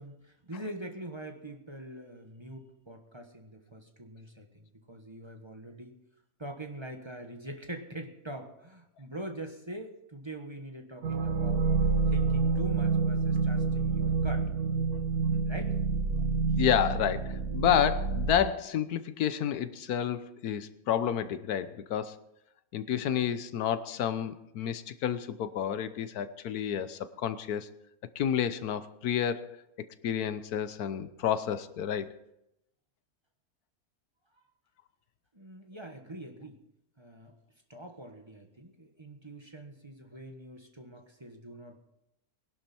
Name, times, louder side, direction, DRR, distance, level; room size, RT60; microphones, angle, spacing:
voice 1, 0.0-6.0 6.4-11.7 12.1-14.5 15.5-15.8 35.3-36.6 37.0-37.3 37.7-41.8, right 1 dB, 20° right, 3 dB, 1.4 m, -44 dB
sound 1, 11.0-18.4, right 4 dB, 80° right, 1.6 m, -28 dB
voice 2, 16.6-22.1 22.7-27.7 28.1-29.5 30.0-32.1, left 9 dB, 90° left, 13 dB, 1.3 m, -30 dB
20.0 x 11.5 x 4.4 m, 0.85 s
omnidirectional pair, 1.6 m